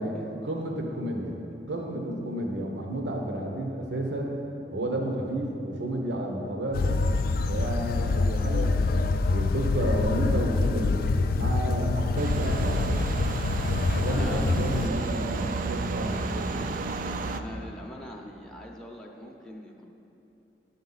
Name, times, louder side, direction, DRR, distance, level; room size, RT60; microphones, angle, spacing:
voice 1, 0.0-1.4 1.7-4.4 4.7-7.0 7.5-13.1 13.9-16.8, right 1 dB, 80° right, 1 dB, 1.0 m, -31 dB
sound 1, 6.7-14.9, left 3 dB, 55° left, 0.3 m, -26 dB
sound 2, 12.2-17.4, right 3 dB, 50° right, 0.4 m, -31 dB
voice 2, 14.1-14.4 17.3-19.8, equal, 5° left, -2 dB, 0.7 m, -42 dB
10.0 x 7.2 x 4.0 m, 2.9 s
head